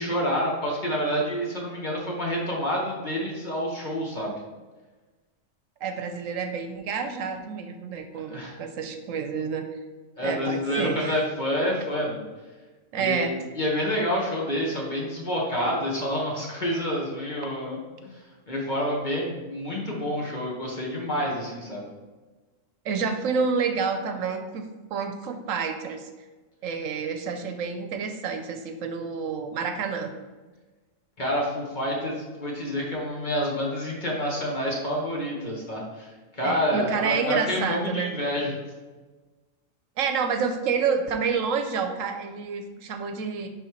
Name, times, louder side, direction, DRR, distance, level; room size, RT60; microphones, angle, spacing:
voice 1, 0.0-4.4 8.3-8.5 10.2-12.2 13.0-13.3 13.5-18.1 18.5-21.9 31.2-38.5, equal, 35° left, -3 dB, 1.6 m, -28 dB
voice 2, 5.8-9.6 10.2-11.2 12.9-13.3 22.8-26.1 26.6-30.1 36.4-38.1 40.0-43.5, right 5 dB, 80° right, 6 dB, 1.0 m, -29 dB
10.5 x 3.7 x 3.1 m, 1.3 s
omnidirectional pair, 1.4 m